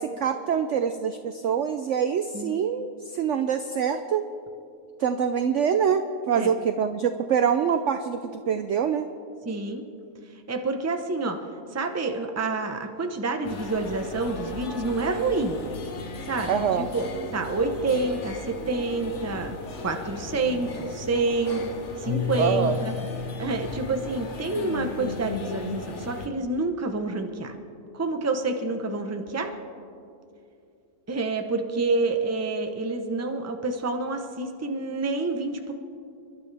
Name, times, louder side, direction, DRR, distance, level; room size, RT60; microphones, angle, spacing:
voice 1, 0.0-4.3 5.0-9.1 16.5-16.9 22.4-22.8, right 7 dB, 75° right, 9 dB, 0.6 m, -25 dB
voice 2, 9.4-9.8 10.5-11.4 11.7-15.6 16.3-16.5 16.8-17.0 17.3-19.5 19.8-21.6 22.0-22.9 23.4-27.5 27.9-29.5 31.1-35.7, right 3 dB, 15° right, 5 dB, 0.5 m, -28 dB
sound 1, 13.4-26.3, left 3 dB, 50° left, 1.2 m, -37 dB
Keyboard (musical), 22.0-25.0, left 5 dB, 15° left, 2.1 m, -33 dB
30.0 x 12.0 x 3.4 m, 2.5 s
omnidirectional pair, 1.9 m